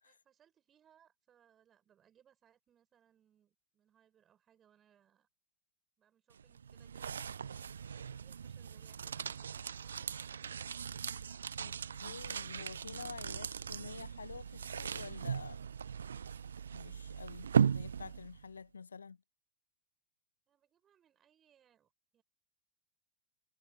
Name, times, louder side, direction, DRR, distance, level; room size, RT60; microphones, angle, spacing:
voice 1, 0.0-5.3 6.0-7.3 7.8-10.5 20.5-22.2, right 9 dB, 25° right, 7.2 m, -70 dB
sound 1, 6.3-18.5, right 7 dB, 70° right, 0.8 m, -38 dB
voice 2, 11.6-15.6 16.7-19.2, left 5 dB, 75° left, 0.8 m, -49 dB
figure-of-eight pair, 90°, 0 cm